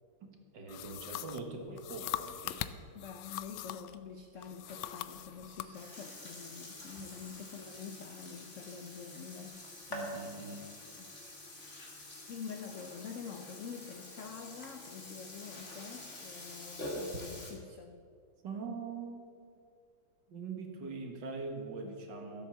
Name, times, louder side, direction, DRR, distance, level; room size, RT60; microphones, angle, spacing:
voice 1, 0.5-2.7 7.0-7.1 9.9-10.7 18.4-19.3 20.3-22.5, right 4 dB, 60° right, 3 dB, 2.2 m, -42 dB
sound 1, 0.7-4.0 4.4-5.7, left 14 dB, 85° left, 1.4 m, -41 dB
voice 2, 2.9-9.6 11.0-11.1 12.2-18.0, left 6 dB, 65° left, 5 dB, 0.7 m, -46 dB
Burping eructation, 4.4-17.5, left 1 dB, 35° left, 2.3 m, -47 dB
13.5 x 8.3 x 7.3 m, 2.2 s
omnidirectional pair, 2.2 m